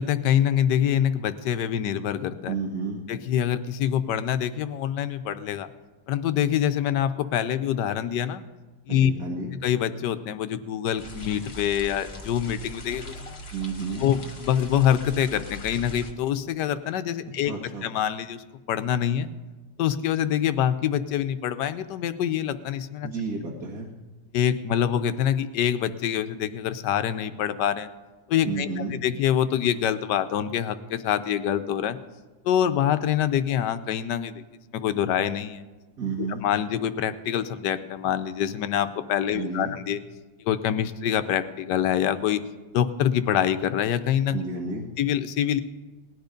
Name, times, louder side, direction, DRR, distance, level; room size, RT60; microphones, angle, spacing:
voice 1, 0.0-2.5 3.1-5.7 6.1-8.4 8.9-9.1 9.6-13.4 14.0-19.3 19.8-23.1 24.3-27.9 28.3-28.7 29.0-32.0 32.4-34.4 34.7-35.6 36.2-40.0 40.4-42.4 42.7-44.4 45.0-45.6, left 10 dB, 80° left, 11 dB, 1.3 m, -25 dB
voice 2, 2.5-3.0 8.9-9.6 13.5-14.1 17.4-17.9 23.0-23.9 28.5-29.0 36.0-36.5 39.3-39.8 44.3-44.9, right 4 dB, 55° right, -3 dB, 2.0 m, -31 dB
sound 1, 11.0-16.1, equal, 40° left, 1.5 m, -40 dB
18.5 x 10.5 x 5.2 m, 1.2 s
omnidirectional pair, 1.8 m